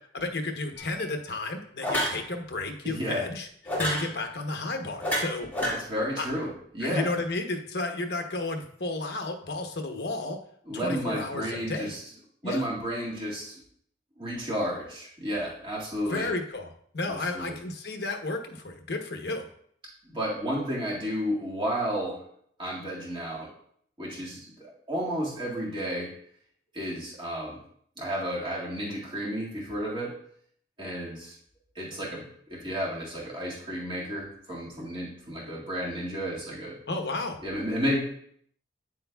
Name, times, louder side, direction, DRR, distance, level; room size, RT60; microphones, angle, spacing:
voice 1, 0.1-3.5 3.8-5.5 6.2-6.3 6.8-10.4 10.7-11.9 12.4-12.7 16.1-16.7 16.9-19.5 36.9-37.4, left 2 dB, 60° left, 4 dB, 1.0 m, -32 dB
sound 1, 0.8-1.0 1.8-2.2 3.7-4.1 5.0-5.7, equal, 10° left, 2.0 m, -28 dB
voice 2, 2.8-3.3 5.6-7.1 10.7-12.0 12.4-13.6 14.2-16.3 17.1-17.6 20.0-22.2 22.6-23.5 24.0-26.1 26.7-27.6 28.0-30.1 30.8-31.4 31.8-36.8 37.4-38.1, equal, 25° right, -6 dB, 1.9 m, -32 dB
8.9 x 8.4 x 2.3 m, 0.65 s
head